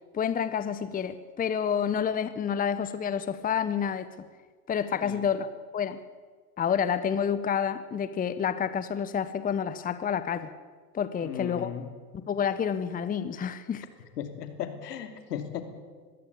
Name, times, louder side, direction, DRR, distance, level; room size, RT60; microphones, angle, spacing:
voice 1, 0.1-4.1 4.7-6.0 6.6-10.5 10.9-11.8 12.1-13.8, left 7 dB, 20° left, 13 dB, 1.0 m, -29 dB
voice 2, 11.2-11.9 14.2-15.6, left 9 dB, 80° left, 8 dB, 2.9 m, -36 dB
21.5 x 15.5 x 8.4 m, 1.5 s
hypercardioid pair, 100°, 47 cm